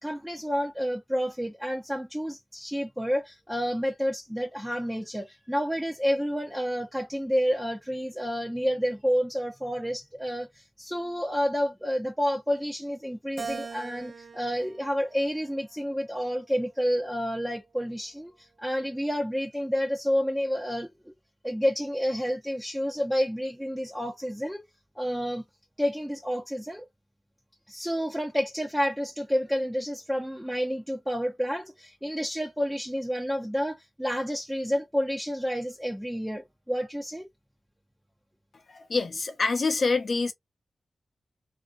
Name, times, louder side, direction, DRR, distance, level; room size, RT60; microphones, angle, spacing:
voice 1, 0.0-21.1 21.4-24.7 25.0-25.4 25.8-26.9 27.7-37.3, equal, 5° right, 0.6 m, -29 dB
Keyboard (musical), 13.4-15.9 16.5-17.7, right 5 dB, 60° right, 0.4 m, -42 dB
voice 2, 38.7-40.3, left 3 dB, 55° left, 0.7 m, -26 dB
2.5 x 2.2 x 2.4 m
wide cardioid pair, 75°, 0 cm